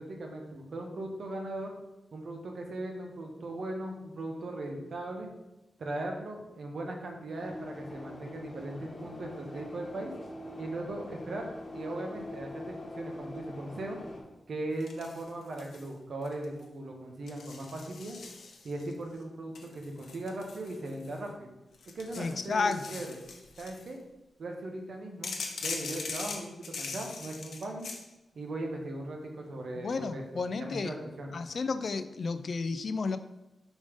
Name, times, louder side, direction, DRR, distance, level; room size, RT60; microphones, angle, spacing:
voice 1, 0.0-1.7 2.1-5.3 5.8-10.1 10.6-14.0 14.5-18.2 18.6-21.5 21.9-23.2 23.6-24.0 24.4-25.3 25.6-27.9 28.3-31.3, right 2 dB, 60° right, 2 dB, 1.0 m, -38 dB
sound 1, 7.3-14.2, left 1 dB, 25° left, 1.2 m, -43 dB
sound 2, 14.8-15.9 16.2-16.6 17.3-18.9 19.5-21.3 21.7-23.9 25.2-28.0, left 4 dB, 80° left, 0.7 m, -41 dB
voice 2, 22.1-22.8 29.8-31.0 31.3-33.2, left 4 dB, 50° left, 11 dB, 0.3 m, -32 dB
5.2 x 3.6 x 5.1 m, 0.96 s
wide cardioid pair, 150°, 0 cm